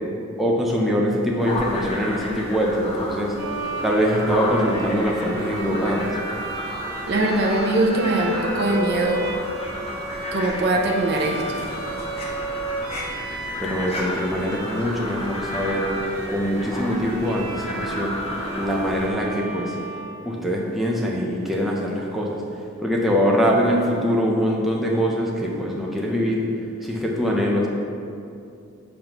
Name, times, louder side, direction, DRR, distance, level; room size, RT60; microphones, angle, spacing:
voice 1, 0.4-3.3 3.8-6.1 13.6-15.9 16.3-18.2 18.6-19.7 20.2-22.4 22.8-26.4 26.8-27.7, equal, ahead, -3 dB, 0.6 m, -23 dB
sound 1, 1.4-19.1, left 1 dB, 30° left, 0.8 m, -32 dB
Bowed string instrument, 3.4-20.8, right 1 dB, 75° right, 0.9 m, -34 dB
voice 2, 7.1-9.2 10.3-11.6, right 2 dB, 50° right, -1 dB, 0.6 m, -22 dB
7.4 x 5.1 x 3.0 m, 2.5 s
head